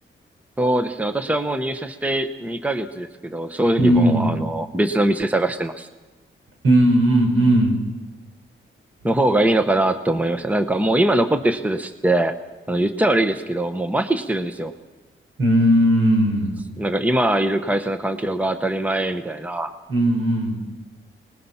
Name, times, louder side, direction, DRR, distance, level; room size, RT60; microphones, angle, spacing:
voice 1, 0.6-5.9 9.0-12.3 12.7-14.7 16.8-19.7, right 1 dB, 5° right, 8 dB, 0.9 m, -22 dB
voice 2, 3.8-4.3 6.6-7.8 15.4-16.5 19.9-20.6, right 1 dB, 85° right, 1 dB, 5.5 m, -17 dB
23.5 x 20.0 x 5.6 m, 1.2 s
wide cardioid pair, 130°, 21 cm